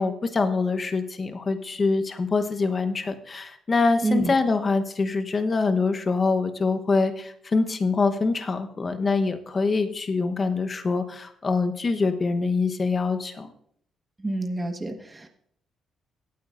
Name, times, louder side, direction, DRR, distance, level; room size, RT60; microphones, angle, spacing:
voice 1, 0.0-13.5, left 4 dB, 35° left, 7 dB, 1.0 m, -24 dB
voice 2, 14.2-15.3, right 2 dB, 20° right, 5 dB, 1.3 m, -27 dB
16.5 x 8.9 x 2.6 m, 0.67 s
cardioid pair, 90°, 0 cm